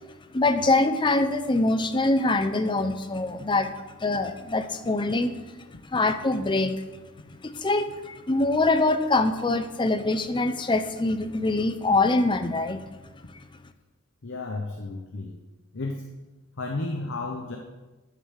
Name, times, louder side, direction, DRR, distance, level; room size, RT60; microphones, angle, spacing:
voice 1, 0.3-3.7 4.0-5.4 5.8-6.8 7.4-12.8, left 2 dB, 20° left, 9 dB, 0.5 m, -24 dB
voice 2, 14.2-15.4 15.7-16.1 16.6-17.6, left 2 dB, 55° left, 3 dB, 0.8 m, -33 dB
10.5 x 5.6 x 6.5 m, 1.2 s
head